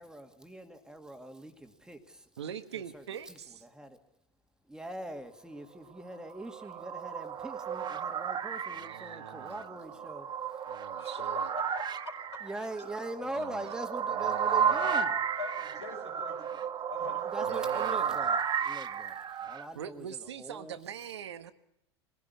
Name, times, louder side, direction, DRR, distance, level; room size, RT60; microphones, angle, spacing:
voice 1, 0.0-2.2 2.7-4.0 4.7-10.3 12.4-15.2 17.3-20.8, right 1 dB, 5° right, 5 dB, 2.3 m, -42 dB
voice 2, 2.4-3.6 8.7-9.8 10.7-11.5 13.3-13.7 14.1-15.1 17.4-18.2 19.7-21.5, right 9 dB, 80° right, 10 dB, 1.3 m, -42 dB
sound 1, 6.2-19.7, right 7 dB, 30° right, 1.4 m, -33 dB
voice 3, 11.0-12.4 14.3-14.4 15.4-17.5, left 5 dB, 85° left, 2 dB, 5.7 m, -45 dB
22.5 x 16.5 x 9.6 m, 0.77 s
hypercardioid pair, 85°, 14 cm